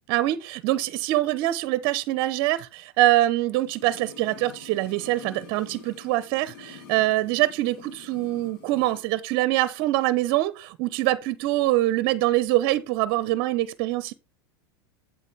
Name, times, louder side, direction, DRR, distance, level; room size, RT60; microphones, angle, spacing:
voice 1, 0.1-14.1, right 16 dB, 50° right, 0.8 m, -24 dB
sound 1, 3.6-9.1 9.4-9.5, left 6 dB, 60° left, 2.3 m, -47 dB
8.3 x 7.5 x 3.4 m
hypercardioid pair, 100°, 12 cm